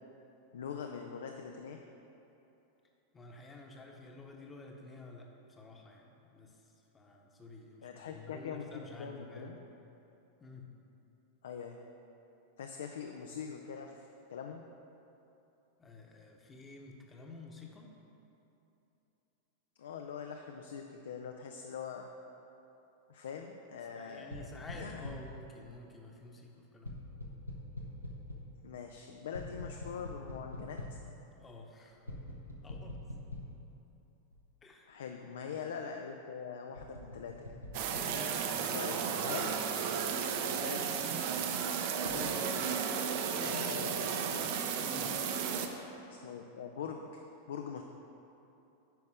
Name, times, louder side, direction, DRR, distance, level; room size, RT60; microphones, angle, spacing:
voice 1, 0.5-1.8 7.8-9.6 11.4-11.8 12.6-14.6 19.8-22.1 23.1-24.5 24.7-25.2 28.6-31.0 34.9-37.6 38.7-39.7 40.4-41.1 42.1-42.5 43.4-44.5 46.1-47.2 47.5-47.8, left 6 dB, 60° left, 3 dB, 0.4 m, -43 dB
voice 2, 3.1-6.6 6.9-9.5 10.4-10.7 15.8-17.9 23.9-27.0 31.4-32.1 32.6-33.0 34.6-35.0 38.1-38.5 44.8-45.1, left 2 dB, 15° left, 1 dB, 1.0 m, -51 dB
sound 1, 24.3-25.4 26.8-28.6 29.3-31.1 32.1-33.7 34.3-34.4 36.7-38.1 42.0-42.2, left 1 dB, 85° left, 0.9 m, -44 dB
sound 2, 37.7-45.7, right 7 dB, 50° right, 0.6 m, -34 dB
9.2 x 5.3 x 4.8 m, 2.9 s
figure-of-eight pair, 90°, 0 cm